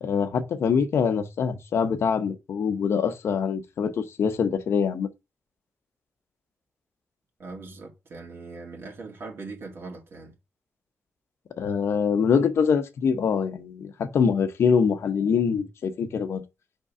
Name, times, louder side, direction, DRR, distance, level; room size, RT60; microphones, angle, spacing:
voice 1, 0.0-5.1 11.6-16.4, left 6 dB, 75° left, 0.9 m, -24 dB
voice 2, 7.4-10.3, right 3 dB, 65° right, 2.1 m, -40 dB
5.3 x 3.7 x 5.3 m
cardioid pair, 90°, 4 cm